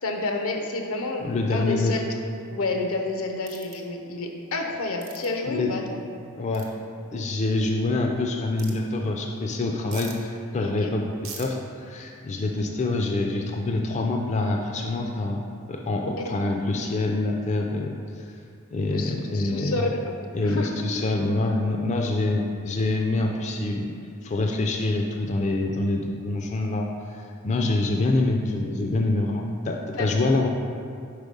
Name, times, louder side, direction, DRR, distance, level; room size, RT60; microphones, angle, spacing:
voice 1, 0.0-6.0 10.6-10.9 16.2-16.3 18.9-20.2 20.4-20.7 29.9-30.1, left 2 dB, 80° left, 3 dB, 0.7 m, -30 dB
voice 2, 1.2-2.0 5.5-5.7 6.4-6.7 7.1-11.1 11.4-17.9 18.7-19.9 20.3-23.9 24.2-30.5, left 2 dB, 35° left, 1 dB, 0.4 m, -26 dB
sound 1, 3.5-3.8 5.0-5.3 6.5-6.7 8.6-8.7 9.9-10.2 11.2-11.5, right 6 dB, 65° right, 0.9 m, -40 dB
4.8 x 4.5 x 5.2 m, 2.3 s
head